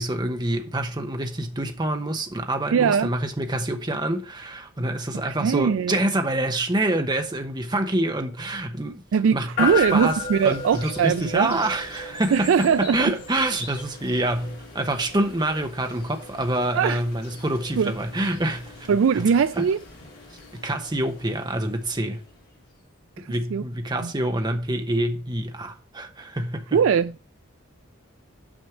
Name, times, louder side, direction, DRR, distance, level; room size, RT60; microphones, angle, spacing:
voice 1, 0.0-9.0 9.3-18.9 19.2-19.3 19.6-19.7 20.5-22.2 23.2-26.8, right 1 dB, 20° right, 1.0 m, -26 dB
voice 2, 2.7-3.1 5.2-6.0 9.1-11.6 12.3-13.1 16.7-17.0 17.8-17.9 18.9-19.8 23.2-23.6 24.0-24.1 26.7-27.3, right 7 dB, 75° right, 0.3 m, -21 dB
sound 1, 9.6-22.6, left 4 dB, 50° left, 3.0 m, -36 dB
6.3 x 5.3 x 5.9 m
head